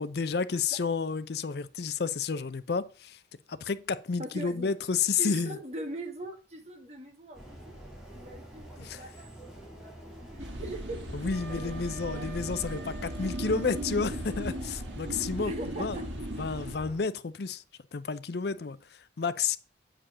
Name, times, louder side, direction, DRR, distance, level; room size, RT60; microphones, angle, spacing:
voice 1, 0.0-3.2 3.5-5.6 8.8-9.1 11.1-15.5 15.8-16.0 16.4-17.6 17.9-19.6, left 5 dB, 60° left, 0.5 m, -31 dB
voice 2, 4.2-4.7 5.2-9.5 9.8-11.7 12.1-12.3 15.4-16.0, right 2 dB, 35° right, 2.0 m, -41 dB
sound 1, 7.3-17.0, equal, ahead, 2.7 m, -45 dB
sound 2, 10.4-16.7, right 1 dB, 75° right, 1.8 m, -37 dB
Wind instrument woodwind instrument, 11.3-14.5, right 5 dB, 60° right, 2.3 m, -47 dB
8.7 x 4.9 x 6.1 m
head